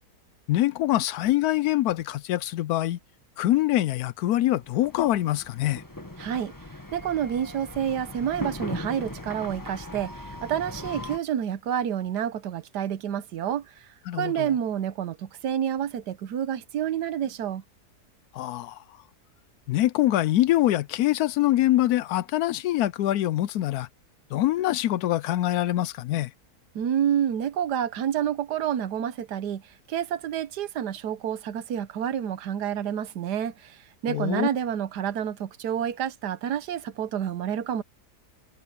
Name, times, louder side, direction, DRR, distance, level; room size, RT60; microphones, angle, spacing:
voice 1, 0.5-3.0 3.4-5.8 14.1-14.5 18.3-18.8 19.7-23.9 24.3-26.3 34.1-34.5, left 14 dB, 75° left, 1.0 m, -24 dB
sound 1, 4.5-11.2, left 1 dB, 10° left, 1.7 m, -39 dB
voice 2, 6.2-6.5 6.9-10.1 10.4-13.6 14.2-17.6 26.7-29.6 29.9-33.8 34.0-37.8, right 9 dB, 85° right, 1.5 m, -28 dB
omnidirectional pair, 1.7 m